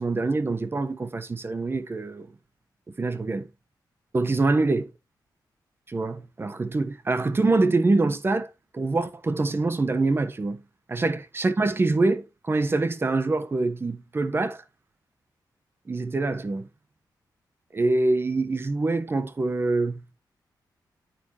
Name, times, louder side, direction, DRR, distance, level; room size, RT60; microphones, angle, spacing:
voice 1, 0.0-2.3 3.0-3.5 4.1-4.9 5.9-10.6 10.9-14.6 15.9-16.7 17.7-20.0, right 3 dB, 30° right, 1.2 m, -25 dB
9.1 x 7.7 x 3.1 m
wide cardioid pair, 105°, 8 cm